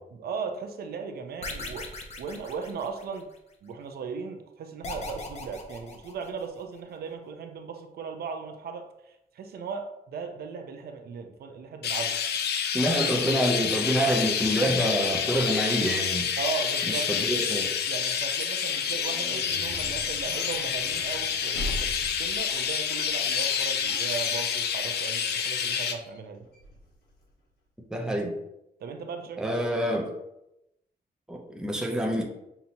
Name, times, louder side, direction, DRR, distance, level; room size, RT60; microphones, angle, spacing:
voice 1, 0.1-3.3 3.6-12.2 16.4-17.1 17.9-26.4 28.8-29.6, right 5 dB, 75° right, 6 dB, 0.5 m, -37 dB
sound 1, 1.4-3.4 4.8-6.6, left 3 dB, 40° left, 0.6 m, -39 dB
Chirp tweet, 11.8-25.9, left 7 dB, 85° left, 0.5 m, -28 dB
voice 2, 12.7-16.3 16.9-17.8 27.9-28.3 29.4-30.0 31.3-32.2, equal, 5° right, 1 dB, 0.5 m, -27 dB
sound 2, 18.6-27.3, equal, 70° left, 1.3 m, -42 dB
5.7 x 2.7 x 2.8 m, 0.87 s
wide cardioid pair, 175°, 17 cm